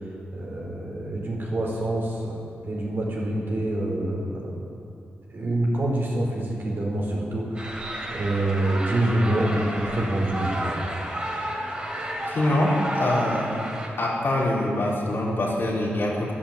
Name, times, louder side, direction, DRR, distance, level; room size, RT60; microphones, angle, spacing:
voice 1, 0.3-4.7 5.3-10.8, right 1 dB, 55° right, -3 dB, 4.4 m, -26 dB
sound 1, 7.6-13.9, right 1 dB, 25° right, 3.6 m, -31 dB
voice 2, 12.3-13.5 14.0-16.3, left 1 dB, 60° left, -5 dB, 4.3 m, -24 dB
11.5 x 10.0 x 8.8 m, 2.6 s
cardioid pair, 50°, 4 cm